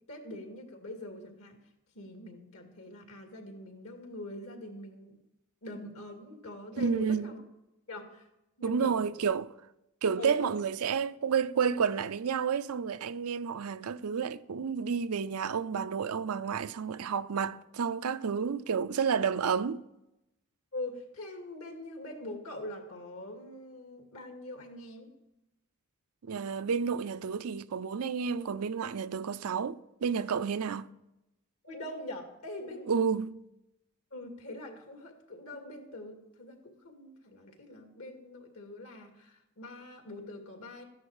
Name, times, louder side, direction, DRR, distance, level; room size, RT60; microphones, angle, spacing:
voice 1, 0.1-1.6 1.9-5.2 5.6-7.4 7.9-8.3 8.6-9.2 10.2-10.5 20.7-25.1 31.6-32.9 34.1-40.8, left 1 dB, 75° left, 2.3 m, -43 dB
voice 2, 6.8-7.3 8.6-9.5 10.0-19.8 26.3-30.9 32.9-33.4, right 6 dB, 85° right, 0.5 m, -30 dB
13.5 x 10.5 x 4.8 m
head